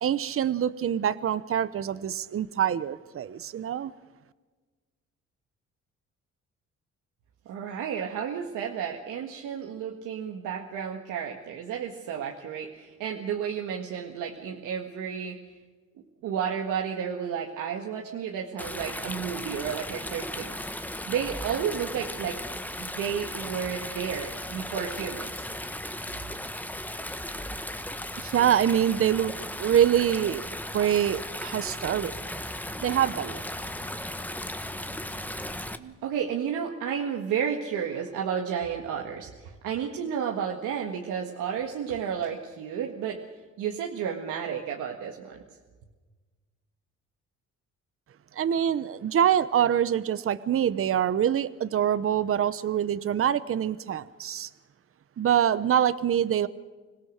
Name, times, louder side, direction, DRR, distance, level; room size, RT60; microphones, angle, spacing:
voice 1, 0.0-3.9 28.2-30.4 30.7-32.1 32.8-33.4 48.4-54.5 55.2-56.5, right 9 dB, 45° right, 15 dB, 0.9 m, -25 dB
voice 2, 7.5-15.4 16.2-20.6 21.1-22.4 22.8-25.5 35.8-43.2 43.6-45.4, right 8 dB, 90° right, 1 dB, 1.9 m, -32 dB
Stream, 18.6-35.8, left 1 dB, 5° left, 1.2 m, -36 dB
25.5 x 17.5 x 6.6 m, 1.3 s
cardioid pair, 90°, 30 cm